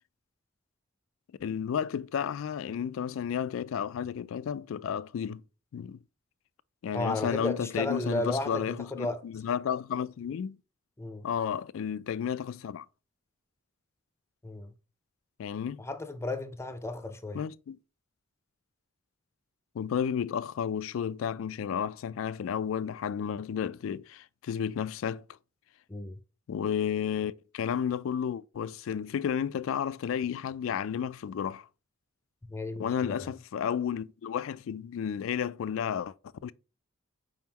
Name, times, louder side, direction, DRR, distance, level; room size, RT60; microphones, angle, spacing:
voice 1, 1.4-5.4 5.7-6.0 6.8-10.6 11.2-12.9 15.4-15.8 17.3-17.8 19.7-25.2 26.5-31.7 32.8-36.1 36.4-36.5, left 8 dB, 75° left, 0.3 m, -32 dB
voice 2, 6.9-9.2 11.0-11.3 14.4-14.7 15.8-17.4 25.9-26.1 32.5-33.3, left 2 dB, 15° left, 0.5 m, -33 dB
5.0 x 3.7 x 2.8 m
head